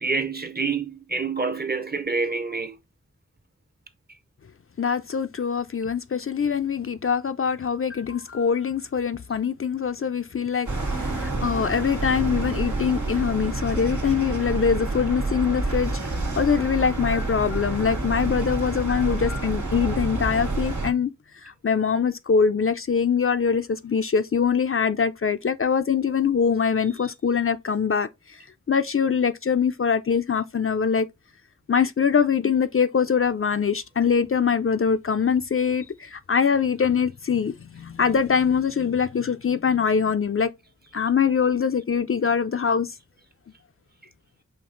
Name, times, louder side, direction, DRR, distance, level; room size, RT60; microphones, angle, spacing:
voice 1, 0.0-2.7, right 4 dB, 35° right, 0.7 m, -27 dB
voice 2, 4.8-15.9 16.4-21.1 21.6-28.1 28.7-31.1 31.7-40.5 40.9-42.9, left 6 dB, 45° left, 0.4 m, -23 dB
sound 1, 10.7-20.9, right 2 dB, 85° right, 1.4 m, -28 dB
5.1 x 2.7 x 3.8 m
wide cardioid pair, 55°, 30 cm